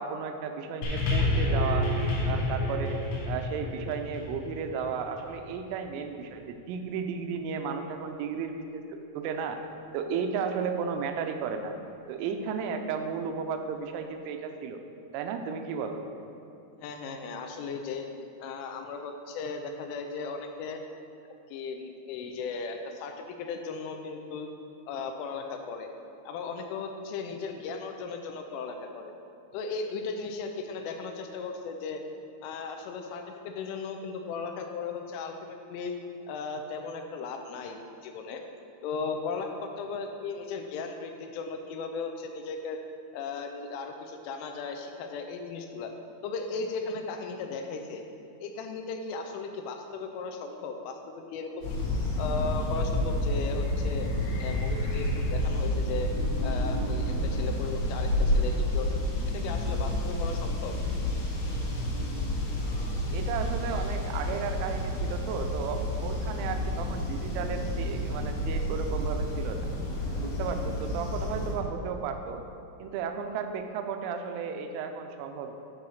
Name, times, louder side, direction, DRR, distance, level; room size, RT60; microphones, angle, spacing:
voice 1, 0.0-1.9 2.2-3.0 3.3-9.6 9.9-11.7 12.1-14.8 15.1-16.0 63.1-69.7 70.2-72.4 72.8-75.5, right 6 dB, 85° right, 6 dB, 3.0 m, -34 dB
sound 1, 0.8-5.4 6.2-6.3, left 2 dB, 65° left, 3.5 m, -29 dB
voice 2, 16.8-18.1 18.4-20.8 21.5-24.5 24.9-25.9 26.3-29.1 29.5-32.0 32.4-36.0 36.3-38.4 38.8-42.8 43.1-45.9 46.2-48.0 48.4-51.8 52.2-54.1 54.4-56.1 56.4-59.0 59.3-60.8, left 4 dB, 80° left, 4 dB, 3.0 m, -36 dB
sound 2, 51.6-71.5, left 1 dB, 50° left, 3.0 m, -30 dB
9.6 x 4.1 x 6.3 m, 2.7 s
omnidirectional pair, 5.8 m